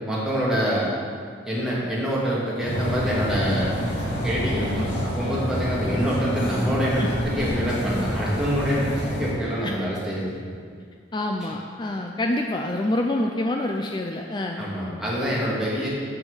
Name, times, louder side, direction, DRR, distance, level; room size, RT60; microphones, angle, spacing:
voice 1, 0.1-0.9 1.4-3.7 4.2-10.4 11.4-11.5 14.6-15.9, equal, 5° right, -7 dB, 2.2 m, -26 dB
sound 1, 2.6-9.3, equal, 90° left, 2.6 m, -27 dB
voice 2, 11.1-14.6, left 1 dB, 25° left, 2 dB, 0.4 m, -27 dB
8.3 x 6.3 x 6.3 m, 2.1 s
head